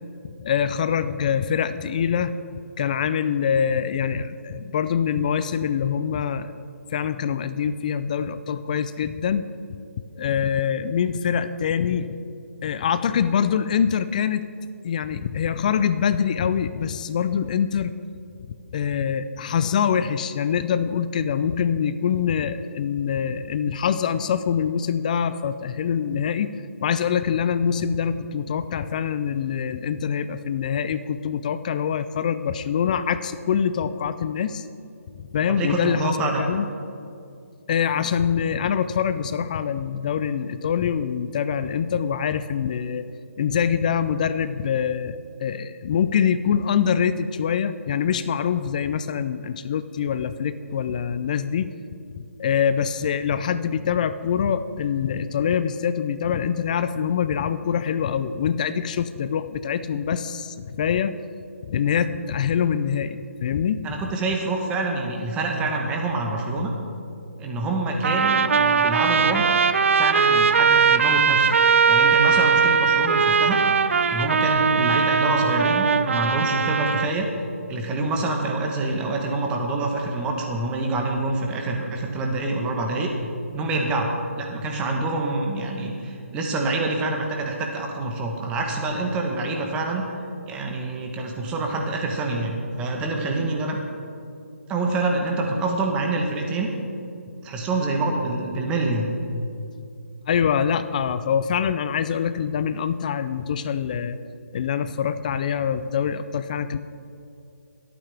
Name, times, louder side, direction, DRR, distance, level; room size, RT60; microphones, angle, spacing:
voice 1, 0.2-2.3 2.8-6.5 6.9-9.4 10.2-12.1 12.6-14.4 14.8-18.0 18.7-26.5 26.8-34.6 35.2-36.7 37.7-43.0 43.4-51.7 52.4-61.1 61.7-63.9 100.3-104.2 104.5-106.8, left 7 dB, 30° left, 13 dB, 0.4 m, -24 dB
voice 2, 35.5-36.4 63.8-66.7 67.4-69.6 69.9-73.6 74.1-77.3 77.7-83.1 83.5-84.1 84.4-90.0 90.5-93.8 94.7-96.7 97.4-99.1, right 2 dB, 15° right, 1 dB, 1.1 m, -26 dB
Trumpet, 68.0-77.1, right 6 dB, 60° right, 0.6 m, -20 dB
23.0 x 8.8 x 3.5 m, 2.5 s
hypercardioid pair, 160°, 8 cm